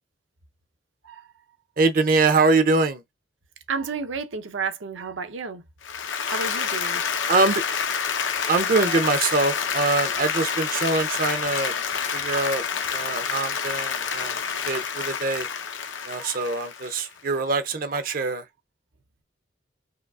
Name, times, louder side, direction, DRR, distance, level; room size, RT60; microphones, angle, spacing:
voice 1, 1.8-3.0 7.3-7.6 8.5-11.7 12.1-12.6 12.9-14.4 14.7-15.5 16.1-18.4, right 3 dB, 45° right, 0.5 m, -23 dB
voice 2, 3.7-5.6 6.3-7.0 13.6-13.8 16.2-16.4 17.9-18.0, right 5 dB, 90° right, 0.8 m, -32 dB
Applause, 5.8-17.2, left 6 dB, 85° left, 0.7 m, -28 dB
5.0 x 2.4 x 2.3 m
head